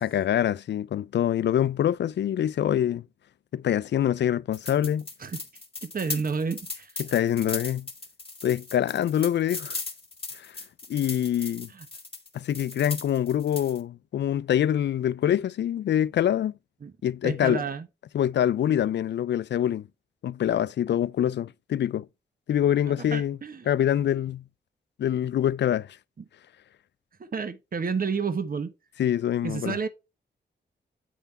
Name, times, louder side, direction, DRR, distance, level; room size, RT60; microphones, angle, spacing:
voice 1, 0.0-3.0 3.5-5.0 7.0-7.9 8.4-9.8 10.3-10.5 10.9-11.7 12.3-16.5 17.0-17.6 18.1-19.9 20.2-22.1 22.5-23.4 23.7-24.4 25.0-26.0 29.0-29.8, left 10 dB, 65° left, 0.4 m, -25 dB
sound 1, 4.5-13.8, left 3 dB, 30° left, 1.7 m, -38 dB
voice 2, 5.8-6.9 11.7-11.9 16.8-16.9 17.2-17.9 22.9-23.7 26.2-26.3 27.2-28.7 29.4-29.9, right 5 dB, 50° right, 1.0 m, -30 dB
9.3 x 3.5 x 4.2 m
cardioid pair, 50°, 19 cm